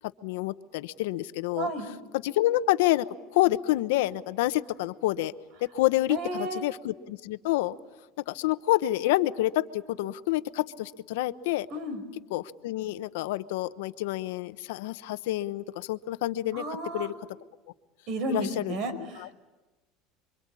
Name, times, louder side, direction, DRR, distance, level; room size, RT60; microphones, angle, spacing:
voice 1, 0.2-1.7 2.1-3.1 3.3-5.3 5.6-7.8 8.3-11.7 12.3-16.6 16.9-17.1 18.3-18.7 19.2-19.3, left 16 dB, 85° left, 12 dB, 1.0 m, -28 dB
voice 2, 1.5-1.9 6.1-6.6 11.7-12.0 16.5-17.1 18.1-19.3, right 2 dB, 60° right, 12 dB, 5.2 m, -32 dB
27.5 x 24.5 x 8.5 m, 1.2 s
supercardioid pair, 130°, 0 cm